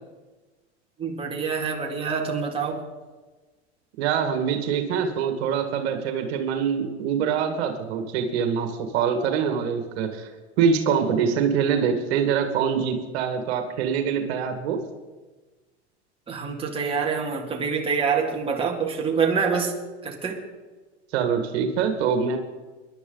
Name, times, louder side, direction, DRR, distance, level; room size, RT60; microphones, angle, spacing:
voice 1, 1.0-2.8 16.3-19.7 20.0-20.4, right 5 dB, 15° right, -1 dB, 2.4 m, -26 dB
voice 2, 4.0-10.3 10.6-14.8 21.1-22.4, right 7 dB, 65° right, 6 dB, 2.0 m, -24 dB
21.5 x 11.5 x 4.0 m, 1.3 s
supercardioid pair, 120°, 34 cm